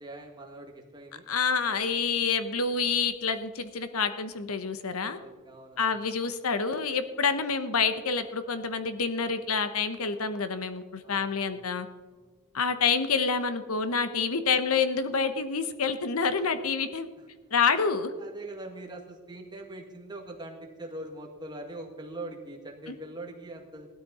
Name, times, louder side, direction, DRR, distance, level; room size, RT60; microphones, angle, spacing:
voice 1, 0.0-1.3 5.2-6.1 11.0-11.6 18.2-23.9, right 2 dB, 20° right, 1 dB, 1.9 m, -42 dB
voice 2, 1.3-5.2 5.8-11.9 12.5-17.1 17.5-18.1 22.9-23.0, left 5 dB, 80° left, 10 dB, 1.0 m, -27 dB
16.5 x 12.5 x 4.3 m, 1.4 s
head